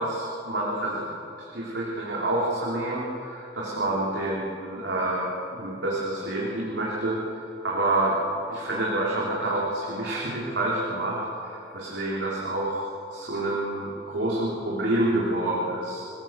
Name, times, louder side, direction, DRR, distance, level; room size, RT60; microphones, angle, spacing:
voice 1, 0.0-7.2 7.6-8.2 8.5-16.1, right 1 dB, 85° right, -4 dB, 3.9 m, -28 dB
28.5 x 19.5 x 7.6 m, 2.7 s
head